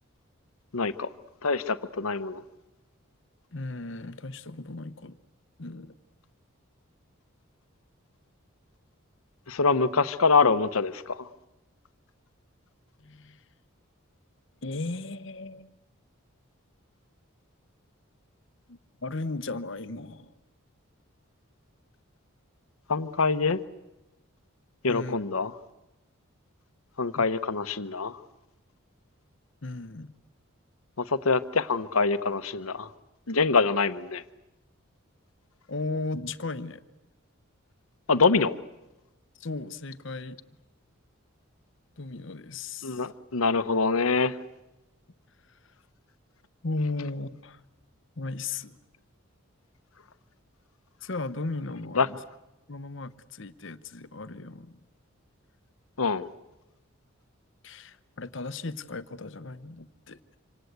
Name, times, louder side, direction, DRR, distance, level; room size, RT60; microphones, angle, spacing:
voice 1, 0.7-1.1 1.4-2.4 9.5-11.3 22.9-23.6 24.8-25.5 27.0-28.2 31.0-32.9 33.3-34.2 38.1-38.6 42.8-44.4 51.9-52.1 56.0-56.3, left 4 dB, 85° left, 13 dB, 1.0 m, -25 dB
voice 2, 3.5-5.2 5.6-5.9 13.0-13.4 14.6-15.7 18.7-20.3 24.9-25.1 27.2-27.3 29.6-30.1 35.7-36.8 39.4-40.4 42.0-43.0 46.6-47.6 48.2-48.8 51.0-52.2 52.7-54.8 57.6-60.4, left 3 dB, 60° left, 13 dB, 1.0 m, -36 dB
26.5 x 26.5 x 8.1 m, 1.0 s
head